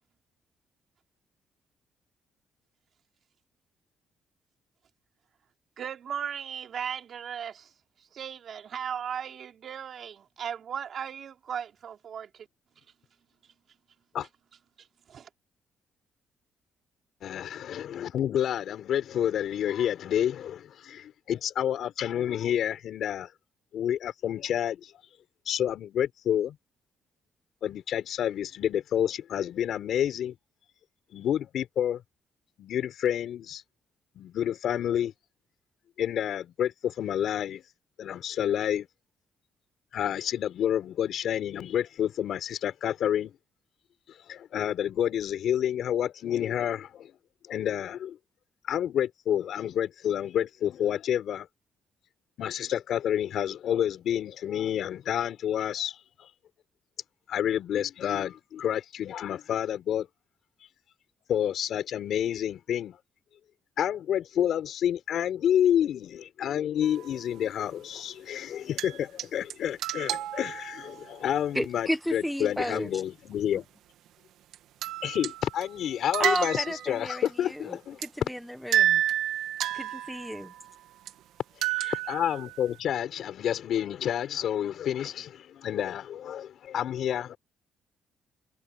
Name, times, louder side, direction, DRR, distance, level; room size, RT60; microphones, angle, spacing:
voice 1, 5.8-12.5 12.8-12.9 13.4-13.5 14.8-15.3, right 8 dB, 60° right, 3.7 m, -37 dB
voice 2, 17.2-23.3 23.7-24.9 25.5-26.6 27.6-30.3 31.1-32.0 32.6-33.6 34.2-35.1 36.0-37.6 38.0-38.9 39.9-43.3 44.1-47.1 47.5-48.2 48.7-51.5 52.4-56.3 57.3-60.1 61.3-63.0 63.8-73.7 75.0-78.0 81.6-87.4, left 10 dB, 70° left, 4.1 m, -29 dB
sound 1, 66.8-67.2 68.8-69.2 69.5-69.6 69.8-71.1 74.5-74.6 74.8-75.8 76.1-77.0 77.2-77.3 78.0-78.1 78.7-80.7 81.1-81.2 81.6-82.8, right 12 dB, 85° right, 2.4 m, -30 dB
voice 3, 71.5-72.9 76.2-79.0 79.7-80.5, equal, ahead, 1.4 m, -32 dB
cardioid pair, 90°, 0 cm